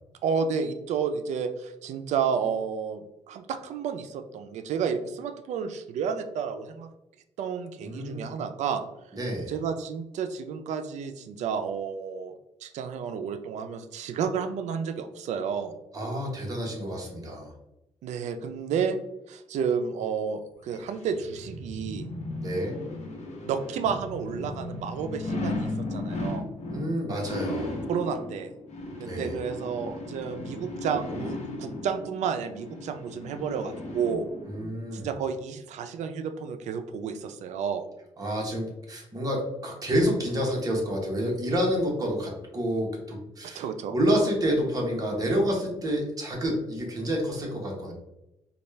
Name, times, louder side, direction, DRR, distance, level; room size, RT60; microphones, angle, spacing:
voice 1, 0.2-6.9 7.4-8.8 9.5-12.3 12.6-15.7 18.0-19.0 19.3-22.1 23.4-26.5 27.9-28.5 29.0-34.3 34.9-37.9 43.4-43.9, right 6 dB, 85° right, 8 dB, 0.4 m, -31 dB
voice 2, 7.8-8.3 9.1-9.5 15.9-17.5 22.4-22.8 26.7-27.8 29.0-29.4 34.5-35.1 38.2-43.6 43.9-47.9, equal, 30° right, -1 dB, 1.1 m, -28 dB
sound 1, 20.8-34.7 35.1-35.2, left 1 dB, 75° left, 1.0 m, -36 dB
4.1 x 2.3 x 3.2 m, 0.90 s
cardioid pair, 115°, 12 cm